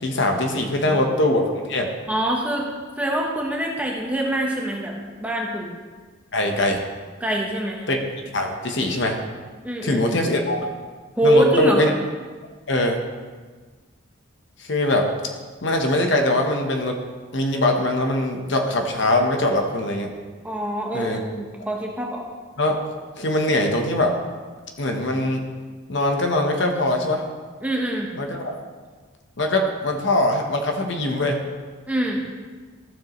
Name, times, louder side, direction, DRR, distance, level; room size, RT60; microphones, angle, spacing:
voice 1, 0.0-1.9 6.3-6.8 7.9-8.0 8.3-9.2 9.8-10.6 11.2-11.9 12.7-13.0 14.6-15.1 15.6-17.0 17.3-20.1 20.9-21.2 22.6-22.8 23.2-24.2 24.8-25.4 25.9-27.2 28.2-28.6 29.4-31.4, left 1 dB, 60° left, 3 dB, 1.0 m, -22 dB
voice 2, 0.6-1.0 2.1-2.7 3.0-4.9 5.2-5.7 7.2-7.9 9.6-10.0 11.2-11.8 20.4-22.3 27.6-28.1 31.9-32.2, right 1 dB, 5° right, -1 dB, 1.0 m, -24 dB
13.5 x 7.4 x 3.1 m, 1.4 s
head